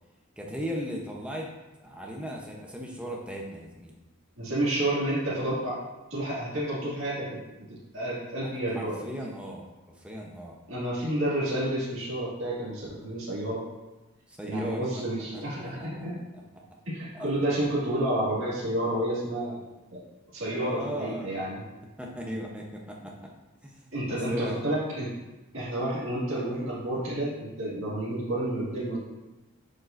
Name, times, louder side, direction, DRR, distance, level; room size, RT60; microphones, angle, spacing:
voice 1, 0.4-1.5 1.8-3.9 8.4-8.5 8.7-10.6 14.3-14.9 15.3-15.4 15.8-16.0 17.1-17.3 20.5-21.4 22.0-23.3 23.6-24.6, equal, 5° right, -1 dB, 0.7 m, -37 dB
voice 2, 4.4-5.8 6.1-7.3 7.6-7.7 7.9-8.9 10.7-13.6 14.5-16.2 16.9-19.6 19.9-20.0 20.3-21.6 23.9-25.1 25.5-29.0, right 1 dB, 60° right, -9 dB, 2.0 m, -30 dB
7.5 x 4.9 x 2.5 m, 1.1 s
head